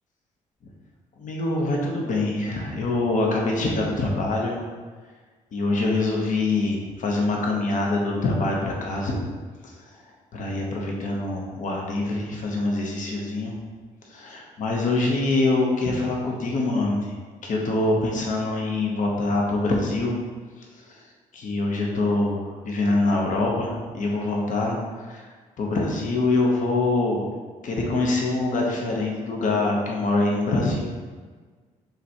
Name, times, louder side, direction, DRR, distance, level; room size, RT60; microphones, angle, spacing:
voice 1, 1.2-4.6 5.5-9.2 9.6-10.0 10.3-13.6 14.0-17.1 17.4-20.2 20.6-21.1 21.3-25.3 25.6-27.3 27.6-30.9, left 2 dB, 60° left, -1 dB, 1.0 m, -25 dB
4.9 x 3.4 x 2.9 m, 1.5 s
supercardioid pair, 60°, 15 cm